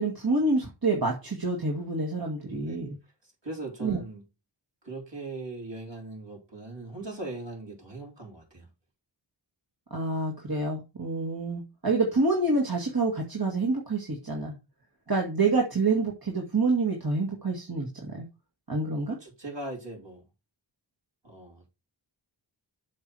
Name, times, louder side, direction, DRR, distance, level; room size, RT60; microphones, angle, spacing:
voice 1, 0.0-3.0 3.8-4.0 9.9-14.5 15.1-18.3 18.7-19.2, right 3 dB, 50° right, 2.1 m, -27 dB
voice 2, 2.4-2.8 3.4-4.2 4.8-8.7 19.1-20.2 21.2-21.7, right 2 dB, 65° right, 4.6 m, -40 dB
7.4 x 6.2 x 4.7 m
wide cardioid pair, 50°, 47 cm